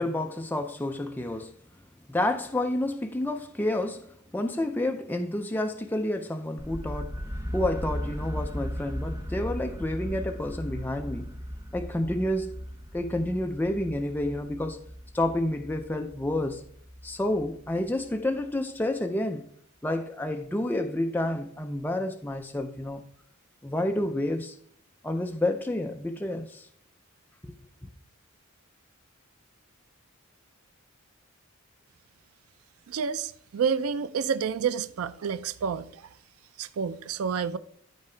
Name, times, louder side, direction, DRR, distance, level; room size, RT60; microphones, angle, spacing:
voice 1, 0.0-1.6 2.1-7.3 7.5-11.3 11.7-12.6 12.9-14.8 15.1-16.6 17.0-19.5 19.8-23.0 23.6-24.6 25.0-26.7 27.4-27.5, left 1 dB, 10° left, 0.4 m, -29 dB
sound 1, 6.6-18.4, equal, 15° right, 0.8 m, -37 dB
voice 2, 32.9-36.0 36.6-37.6, right 6 dB, 90° right, 0.4 m, -29 dB
13.0 x 4.5 x 3.3 m
head